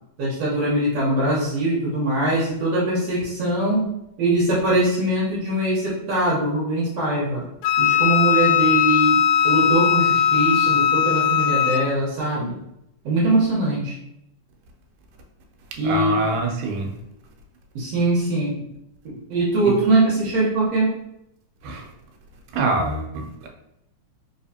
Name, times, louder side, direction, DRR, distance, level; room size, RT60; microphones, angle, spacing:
voice 1, 0.2-3.8 4.2-7.4 7.8-9.2 9.4-12.6 13.0-13.9 15.8-16.3 17.8-18.5 19.3-20.9, right 2 dB, 60° right, -5 dB, 2.0 m, -22 dB
Wind instrument woodwind instrument, 7.6-11.9, left 9 dB, 90° left, 2.2 m, -19 dB
voice 2, 15.8-16.9 19.6-19.8 21.6-21.9 22.5-23.5, right 3 dB, 85° right, 1 dB, 2.3 m, -25 dB
4.7 x 3.2 x 2.7 m, 0.83 s
omnidirectional pair, 3.7 m